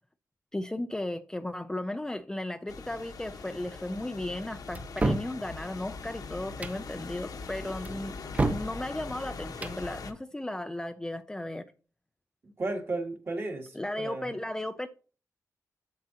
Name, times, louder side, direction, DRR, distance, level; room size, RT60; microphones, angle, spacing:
voice 1, 0.5-8.1 8.5-11.7 13.7-14.9, left 1 dB, 10° left, 0.4 m, -35 dB
sound 1, 2.7-10.1, left 4 dB, 80° left, 1.2 m, -42 dB
sound 2, 4.7-5.3 6.5-6.8 7.8-8.7 9.5-9.8, right 2 dB, 25° right, 0.7 m, -29 dB
voice 2, 12.4-14.3, right 2 dB, 40° right, 1.8 m, -34 dB
8.5 x 7.7 x 2.8 m
wide cardioid pair, 160°, 6 cm